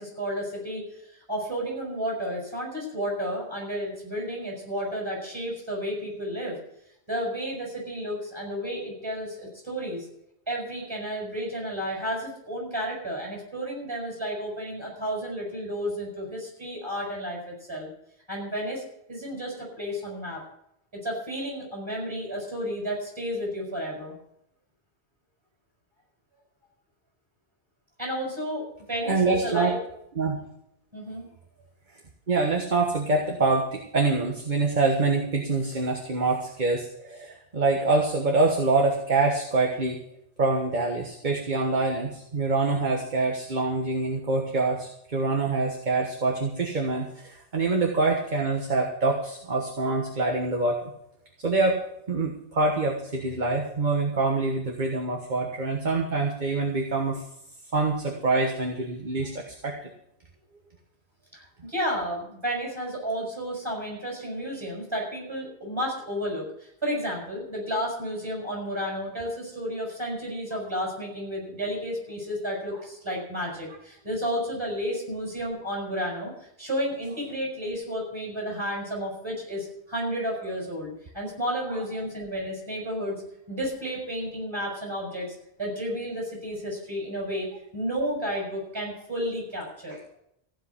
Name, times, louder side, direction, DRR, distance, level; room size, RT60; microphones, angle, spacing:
voice 1, 0.0-6.6 7.1-10.1 10.5-17.9 18.3-18.8 19.1-20.4 21.0-24.1 28.0-29.8 30.9-31.2 61.3-83.1 83.5-90.0, equal, 25° right, -2 dB, 6.2 m, -32 dB
voice 2, 29.0-29.7 30.2-30.4 32.3-40.0 40.4-50.9 51.4-51.8 52.1-57.2 57.7-59.8, right 3 dB, 45° right, 1 dB, 1.5 m, -25 dB
15.5 x 5.2 x 9.8 m, 0.76 s
omnidirectional pair, 1.1 m